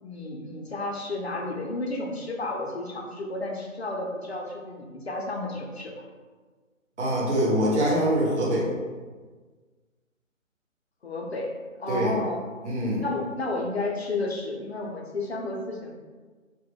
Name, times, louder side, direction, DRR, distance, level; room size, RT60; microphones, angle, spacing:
voice 1, 0.0-5.9 11.0-12.4 13.0-15.9, left 2 dB, 55° left, 0 dB, 0.4 m, -32 dB
voice 2, 7.0-8.7 11.9-12.1 12.6-13.0, right 1 dB, 60° right, -6 dB, 1.2 m, -24 dB
2.2 x 2.1 x 3.5 m, 1.4 s
figure-of-eight pair, 150°, 40 cm